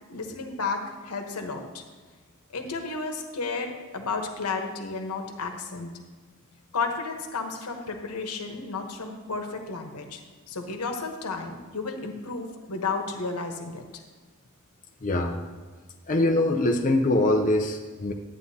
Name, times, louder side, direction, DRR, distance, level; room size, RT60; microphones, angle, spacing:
voice 1, 0.1-1.8 2.5-5.9 6.7-14.0, left 4 dB, 85° left, 5 dB, 1.0 m, -32 dB
voice 2, 15.0-15.4 16.1-18.1, left 1 dB, 35° left, 2 dB, 0.5 m, -23 dB
11.5 x 9.0 x 2.8 m, 1.5 s
head